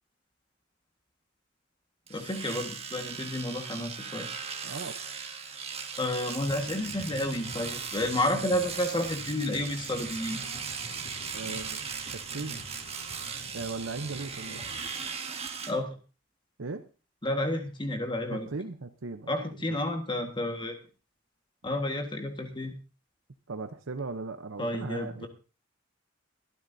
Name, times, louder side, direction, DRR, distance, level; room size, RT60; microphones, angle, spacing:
voice 1, 2.1-4.3 6.0-10.4 15.7-15.9 17.2-18.5 19.3-20.7 21.6-22.7 24.6-25.3, left 1 dB, 25° left, 5 dB, 1.6 m, -31 dB
Domestic sounds home sounds, 2.1-15.7, right 6 dB, 30° right, 1.6 m, -38 dB
voice 2, 4.6-5.0 11.3-11.8 12.3-12.6 13.5-14.6 16.6-16.8 18.3-19.3 19.7-19.8 23.5-25.3, right 3 dB, 85° right, 8 dB, 0.8 m, -37 dB
sound 1, 6.4-15.1, equal, 50° left, 3.4 m, -47 dB
22.5 x 12.5 x 2.7 m, 0.33 s
head